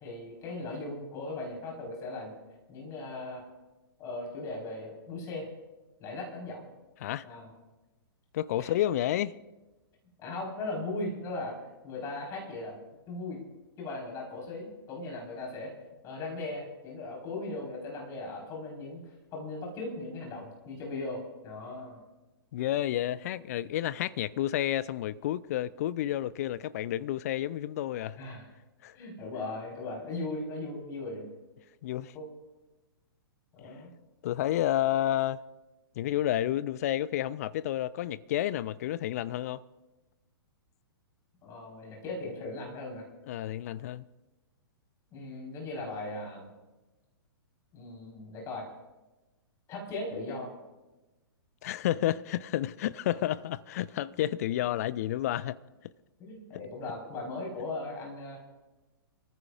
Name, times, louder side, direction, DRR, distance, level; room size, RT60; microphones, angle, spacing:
voice 1, 0.0-2.4 2.7-3.4 4.0-5.5 6.0-6.7 7.2-7.5 8.6-8.7 10.2-11.5 11.8-12.8 13.1-13.4 13.8-15.7 16.0-22.0 28.2-28.4 28.9-31.3 32.1-32.3 33.5-33.9 41.4-43.1 45.1-46.5 47.7-48.7 49.7-50.5 56.2-58.4, left 2 dB, 25° left, 4.3 m, -38 dB
voice 2, 8.3-9.4 22.5-28.2 28.8-29.0 31.8-32.1 34.2-35.4 36.0-39.6 43.3-44.0 51.6-55.6, left 13 dB, 40° left, 0.4 m, -30 dB
26.5 x 14.5 x 2.5 m
figure-of-eight pair, 115°, 13 cm